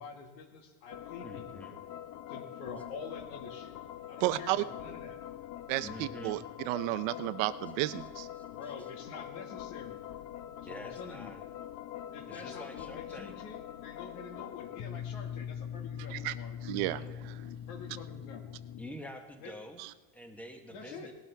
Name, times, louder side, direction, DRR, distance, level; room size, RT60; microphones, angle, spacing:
voice 1, 0.0-1.7 2.3-3.7 4.1-5.2 8.5-10.0 10.6-11.3 12.1-16.6 17.7-18.5 19.4-19.5 20.7-21.1, left 5 dB, 75° left, 2 dB, 2.0 m, -47 dB
sound 1, 0.9-18.9, left 10 dB, 50° left, 0.8 m, -43 dB
voice 2, 1.2-1.8 5.8-6.4 8.4-8.5 10.6-11.4 12.3-13.4 16.8-17.2 18.8-19.8 20.1-21.1, equal, 5° left, 4 dB, 1.0 m, -47 dB
voice 3, 4.2-4.6 5.7-8.3 16.0-16.3 16.6-17.5 19.8-19.9, right 16 dB, 65° right, 14 dB, 0.7 m, -33 dB
19.0 x 12.0 x 3.4 m, 1.3 s
cardioid pair, 160°, 43 cm